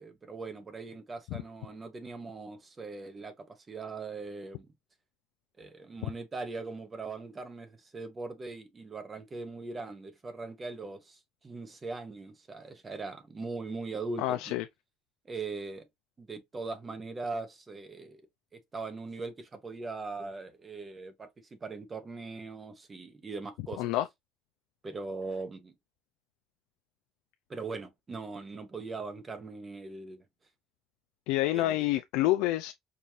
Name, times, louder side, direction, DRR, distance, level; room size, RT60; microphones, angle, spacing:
voice 1, 0.0-4.7 5.6-14.5 15.2-15.8 16.2-18.2 18.5-21.3 21.6-23.9 24.8-25.7 27.5-30.2 31.5-31.8, right 3 dB, 20° right, 0.7 m, -40 dB
voice 2, 14.2-14.6 23.8-24.1 31.3-32.7, left 15 dB, 80° left, 0.3 m, -28 dB
4.7 x 2.5 x 2.7 m
cardioid pair, 160°, 0 cm